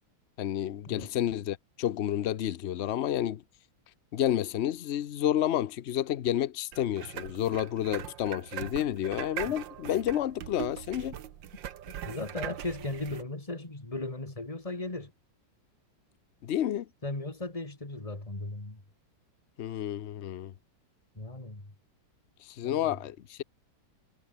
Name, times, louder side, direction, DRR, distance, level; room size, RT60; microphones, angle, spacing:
voice 1, 0.4-3.4 4.1-11.2 16.4-16.9 19.6-20.5 22.4-23.4, left 11 dB, 60° left, 0.7 m, -30 dB
sound 1, 6.7-13.2, right 10 dB, 75° right, 1.9 m, -41 dB
voice 2, 11.9-15.1 17.0-18.8 21.1-21.7 22.6-22.9, left 2 dB, 15° left, 3.3 m, -37 dB
omnidirectional pair, 2.0 m